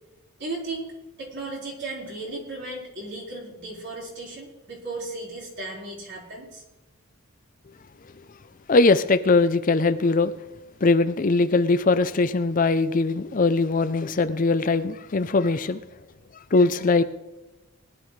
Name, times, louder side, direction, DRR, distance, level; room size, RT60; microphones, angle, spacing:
voice 1, 0.4-0.9 1.2-6.6, right 2 dB, 50° right, -3 dB, 4.7 m, -35 dB
voice 2, 8.7-10.3 10.8-15.8 16.5-17.0, left 3 dB, 40° left, 12 dB, 0.5 m, -21 dB
19.5 x 11.5 x 3.2 m, 1.0 s
head